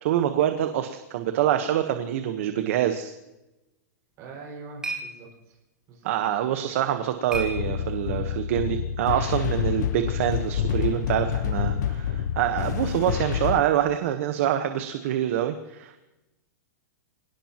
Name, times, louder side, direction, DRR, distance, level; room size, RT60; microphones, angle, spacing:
voice 1, 0.0-3.1 6.0-16.0, right 11 dB, 45° right, 7 dB, 1.2 m, -26 dB
sound 1, 4.1-8.3, right 2 dB, 5° right, 1.7 m, -39 dB
voice 2, 4.2-5.6 5.9-6.1 12.6-12.9, right 4 dB, 30° right, -2 dB, 5.8 m, -43 dB
sound 2, 7.3-13.6, left 8 dB, 65° left, 0.7 m, -28 dB
26.0 x 18.0 x 3.0 m, 0.99 s
supercardioid pair, 170°, 10 cm